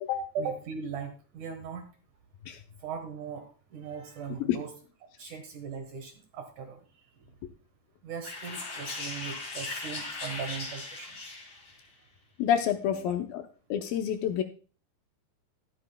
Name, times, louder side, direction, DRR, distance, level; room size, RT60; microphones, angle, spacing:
voice 1, 0.3-1.9 2.8-4.7 5.2-7.1 8.0-11.2 12.9-13.0, right 6 dB, 60° right, 5 dB, 2.4 m, -39 dB
sound 1, 8.2-11.8, left 3 dB, 30° left, 2.1 m, -38 dB
voice 2, 12.4-13.4 13.7-14.4, left 9 dB, 75° left, 6 dB, 2.3 m, -28 dB
13.5 x 11.5 x 2.2 m, 0.37 s
omnidirectional pair, 4.6 m